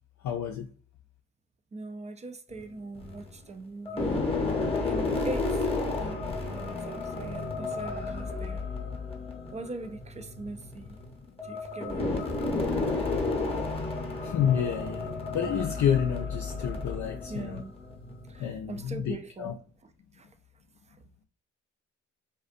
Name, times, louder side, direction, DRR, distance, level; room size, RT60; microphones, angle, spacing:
voice 1, 0.2-0.7 14.2-15.1 15.3-17.6 18.4-19.5, left 9 dB, 55° left, 0.5 m, -29 dB
voice 2, 1.7-4.5 4.8-5.7 6.0-6.2 6.5-8.6 9.5-11.0 11.4-12.3 17.3-17.7 18.3-19.5 19.8-20.3 20.9-21.0, right 2 dB, 20° right, 0.4 m, -41 dB
sound 1, 2.5-3.3 3.8-18.4, left 3 dB, 15° left, 0.9 m, -32 dB
2.5 x 2.2 x 2.5 m
supercardioid pair, 50°, 35 cm